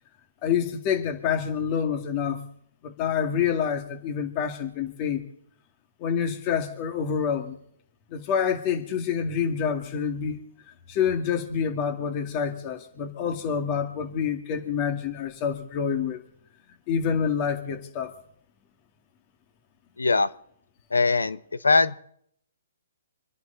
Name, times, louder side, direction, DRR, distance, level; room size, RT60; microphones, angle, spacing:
voice 1, 0.4-2.5 2.8-5.3 6.0-7.6 8.1-10.4 10.9-16.2 16.9-18.1, left 7 dB, 30° left, 6 dB, 2.1 m, -27 dB
voice 2, 20.0-20.3 20.9-22.0, left 3 dB, 85° left, 15 dB, 0.8 m, -21 dB
27.0 x 10.5 x 4.0 m, 0.70 s
hypercardioid pair, 135°, 0 cm